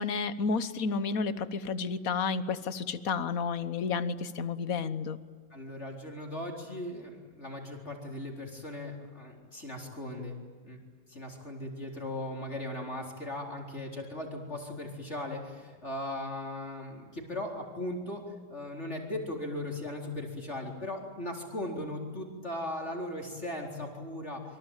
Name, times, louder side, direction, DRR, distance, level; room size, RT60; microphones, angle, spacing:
voice 1, 0.0-5.2, left 5 dB, 50° left, 14 dB, 1.3 m, -31 dB
voice 2, 5.5-10.4 10.6-10.8 11.1-18.2 18.5-24.4, left 1 dB, 30° left, 1 dB, 4.4 m, -38 dB
26.5 x 24.0 x 9.1 m, 1.5 s
omnidirectional pair, 2.3 m